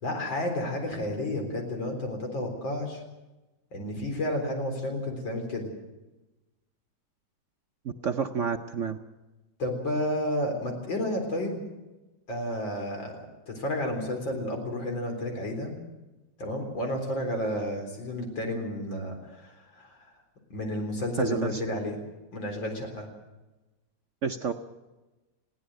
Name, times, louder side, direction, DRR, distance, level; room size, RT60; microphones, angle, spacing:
voice 1, 0.0-3.0 3.7-5.7 9.6-11.6 12.3-15.7 16.4-20.1 20.5-22.0 22.3-23.1, left 1 dB, 85° left, 3 dB, 4.8 m, -31 dB
voice 2, 7.8-9.0 21.2-21.6 24.2-24.5, right 6 dB, 55° right, 6 dB, 0.9 m, -29 dB
21.5 x 16.0 x 7.8 m, 1.1 s
omnidirectional pair, 2.0 m